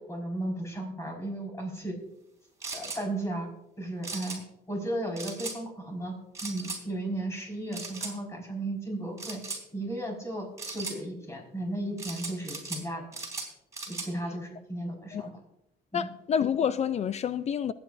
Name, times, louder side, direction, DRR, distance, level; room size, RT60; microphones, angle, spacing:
voice 1, 0.1-1.9 2.7-3.5 3.8-4.4 4.7-6.1 6.4-9.4 9.7-13.2 13.9-15.3 15.9-16.1, right 1 dB, 15° left, 5.0 m, -35 dB
sound 1, 2.6-3.0 4.0-4.4 5.2-5.6 6.4-6.8 7.7-8.1 9.2-9.6 10.6-11.0 12.0-12.8 13.1-14.1, right 3 dB, 20° right, 3.5 m, -37 dB
voice 2, 15.9-17.7, left 8 dB, 40° left, 0.4 m, -28 dB
22.5 x 9.0 x 2.6 m
cardioid pair, 110°, 17 cm